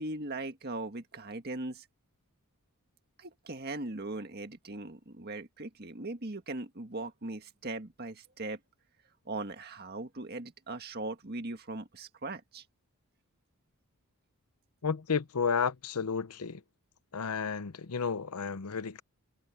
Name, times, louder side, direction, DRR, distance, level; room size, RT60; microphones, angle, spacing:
voice 1, 0.0-1.9 3.2-8.6 9.3-12.6, right 2 dB, 45° right, 1.8 m, -39 dB
voice 2, 14.8-16.6 17.1-19.0, left 6 dB, 85° left, 0.7 m, -32 dB
head